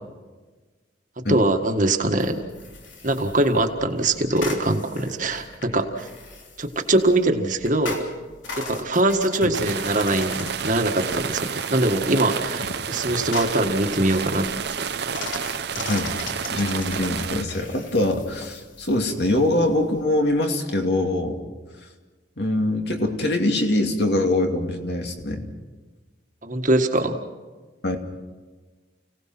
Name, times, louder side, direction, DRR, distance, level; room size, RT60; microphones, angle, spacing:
voice 1, 1.2-2.4 3.0-6.1 6.6-8.1 8.6-14.5 26.4-27.2, right 1 dB, 45° right, 5 dB, 1.7 m, -22 dB
sound 1, 2.2-20.4, left 2 dB, 80° left, 3.6 m, -40 dB
sound 2, 9.5-17.4, right 6 dB, 60° right, 0.7 m, -30 dB
voice 2, 15.8-16.1 16.5-21.4 22.4-25.5 27.8-28.0, left 1 dB, 60° left, 3 dB, 2.6 m, -23 dB
29.5 x 18.0 x 6.1 m, 1.3 s
head